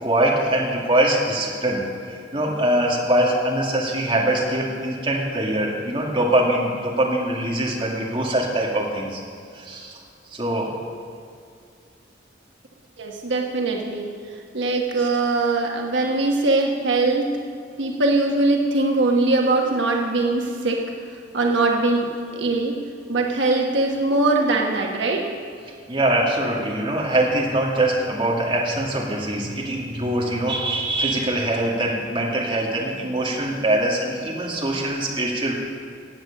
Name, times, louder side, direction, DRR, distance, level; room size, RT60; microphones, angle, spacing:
voice 1, 0.0-9.2 9.5-10.0 10.3-10.7 15.0-15.1 25.9-35.5, right 1 dB, 25° right, -3 dB, 2.1 m, -23 dB
voice 2, 13.0-14.1 14.5-17.3 17.8-20.8 21.3-22.8 23.1-25.3, right 2 dB, 75° right, 0 dB, 1.3 m, -21 dB
17.0 x 8.2 x 6.5 m, 2.3 s
head